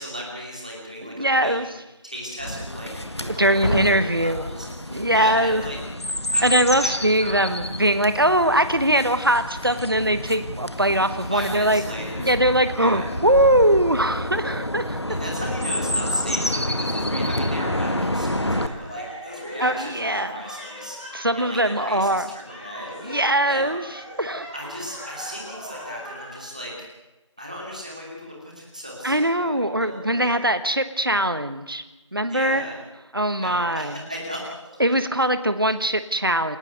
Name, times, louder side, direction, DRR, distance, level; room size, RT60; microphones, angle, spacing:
voice 1, 0.0-1.7 2.0-5.8 6.3-6.5 6.8-6.9 7.2-7.5 11.3-12.3 12.8-13.1 15.1-23.2 23.5-23.7 24.5-26.7 27.4-30.3 32.3-32.8 33.4-34.8, equal, 15° right, -2 dB, 2.8 m, -36 dB
voice 2, 1.1-1.6 3.4-4.4 4.9-5.6 6.4-11.8 12.2-15.0 19.6-20.4 21.1-22.3 23.0-23.8 24.2-24.5 29.0-31.8 32.1-32.6 33.1-33.9 34.8-36.6, right 1 dB, 45° right, 11 dB, 1.3 m, -21 dB
Chirp tweet, 2.4-18.7, left 1 dB, 55° left, 1.8 m, -28 dB
sound 1, 17.4-26.3, equal, 15° left, 5.0 m, -39 dB
28.0 x 12.5 x 8.0 m, 1.1 s
figure-of-eight pair, 180°, 16 cm